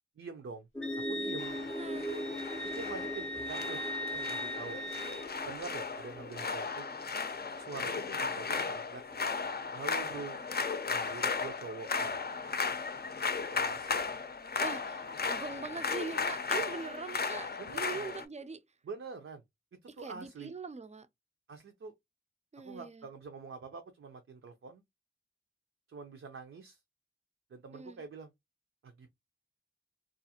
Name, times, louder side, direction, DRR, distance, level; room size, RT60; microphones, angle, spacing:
voice 1, 0.2-0.7 1.1-1.5 2.6-3.8 4.1-4.8 5.4-6.9 7.6-9.0 9.7-10.4 10.9-12.2 13.4-14.0 17.6-18.1 18.8-19.4 20.0-20.5 21.5-21.9 22.6-24.8 25.9-26.8 27.5-28.3 28.8-29.2, right 4 dB, 85° right, 0.5 m, -45 dB
sound 1, 0.7-8.4, equal, 15° left, 0.7 m, -42 dB
Wind instrument woodwind instrument, 0.8-5.3, left 1 dB, 90° left, 0.7 m, -40 dB
sound 2, 1.4-18.2, left 5 dB, 50° left, 0.5 m, -36 dB
voice 2, 1.8-2.1 14.6-18.6 19.9-21.1 22.5-23.1 27.7-28.0, right 4 dB, 35° right, 0.4 m, -42 dB
2.4 x 2.4 x 2.7 m
wide cardioid pair, 45°, 21 cm